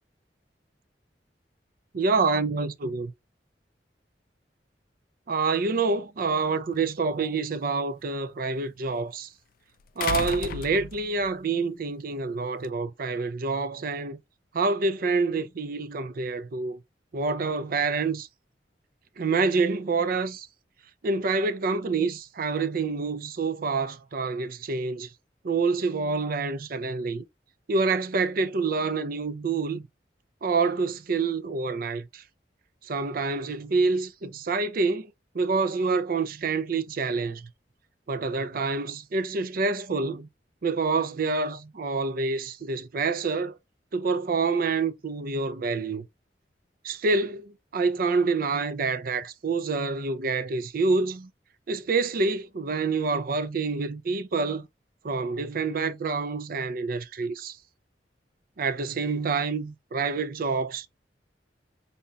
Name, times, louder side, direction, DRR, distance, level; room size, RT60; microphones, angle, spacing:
voice 1, 1.9-3.1 5.3-9.3 10.0-14.2 14.5-16.8 17.1-18.3 19.2-20.5 21.0-25.1 25.4-27.2 27.7-29.8 30.4-32.2 32.9-35.1 35.3-37.4 38.1-40.3 40.6-43.5 43.9-46.0 46.8-51.3 51.7-54.6 55.0-57.6 58.6-60.9, right 4 dB, 55° right, 0.5 m, -27 dB
sound 1, 6.7-6.8 10.0-11.3 12.6-12.7, left 8 dB, 55° left, 0.3 m, -32 dB
5.3 x 2.8 x 2.3 m
head